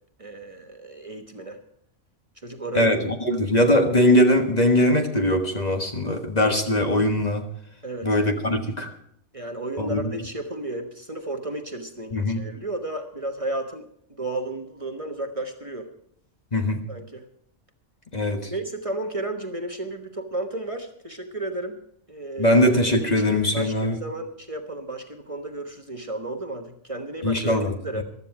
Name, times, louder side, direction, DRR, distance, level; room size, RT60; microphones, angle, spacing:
voice 1, 0.2-1.6 2.4-2.9 7.8-8.1 9.3-15.9 16.9-17.2 18.5-21.8 22.1-22.5 23.0-27.5 27.8-28.0, right 2 dB, 30° right, 4 dB, 1.2 m, -33 dB
voice 2, 2.7-7.5 8.0-8.9 9.8-10.0 12.1-12.4 16.5-16.9 18.1-18.5 22.4-24.0 27.2-28.0, left 1 dB, 35° left, 4 dB, 1.5 m, -21 dB
15.5 x 12.5 x 4.8 m, 0.69 s
omnidirectional pair, 1.3 m